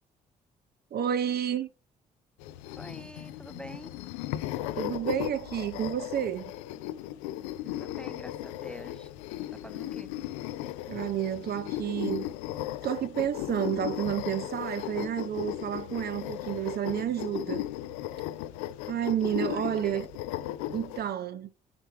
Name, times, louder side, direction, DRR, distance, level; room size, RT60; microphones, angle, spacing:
voice 1, 0.9-1.7 4.8-6.5 10.9-12.3 12.8-17.6 18.9-20.1 20.7-21.5, right 10 dB, 50° right, 0.7 m, -30 dB
sound 1, 2.4-21.1, left 14 dB, 80° left, 0.4 m, -36 dB
voice 2, 2.8-3.9 7.6-9.1 9.4-10.1 19.3-20.0, equal, 5° left, 0.6 m, -46 dB
7.9 x 4.5 x 4.5 m
hypercardioid pair, 45°, 20 cm